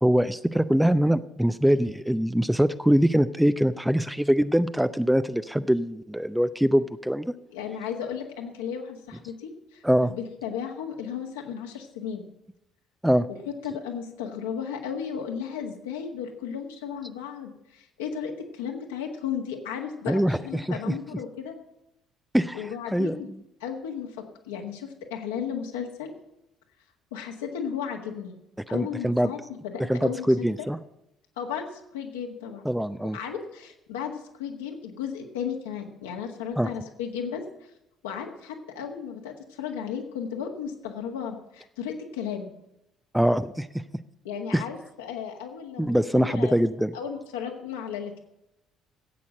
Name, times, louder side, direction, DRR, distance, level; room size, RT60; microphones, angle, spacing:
voice 1, 0.0-7.3 9.8-10.1 13.0-13.3 20.1-20.9 22.3-23.4 28.7-29.3 29.9-30.8 32.6-33.2 36.6-36.7 43.1-43.8 44.5-44.6 45.8-46.9, equal, 5° right, 13 dB, 0.6 m, -23 dB
voice 2, 7.5-12.2 13.5-21.5 22.5-23.3 23.6-24.1 24.5-26.1 27.1-28.3 28.7-30.7 31.4-32.7 33.1-37.4 38.0-42.5 44.2-46.6 46.9-48.2, left 7 dB, 70° left, 2 dB, 1.7 m, -34 dB
13.5 x 8.5 x 7.6 m, 0.87 s
figure-of-eight pair, 50°, 0 cm